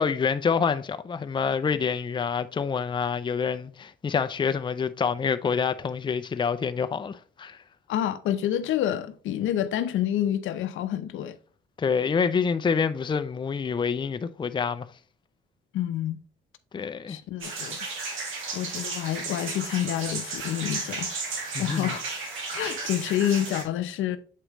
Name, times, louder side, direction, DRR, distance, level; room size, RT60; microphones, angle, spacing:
voice 1, 0.0-7.6 11.8-14.9 16.7-17.2 21.5-21.9, left 6 dB, 25° left, 0.5 m, -27 dB
voice 2, 7.9-11.4 15.7-16.2 17.1-17.8 18.5-22.0 22.5-24.2, left 11 dB, 80° left, 0.7 m, -28 dB
sound 1, 17.4-23.6, right 3 dB, 85° right, 2.1 m, -34 dB
7.5 x 4.9 x 3.0 m
cardioid pair, 90°, 20 cm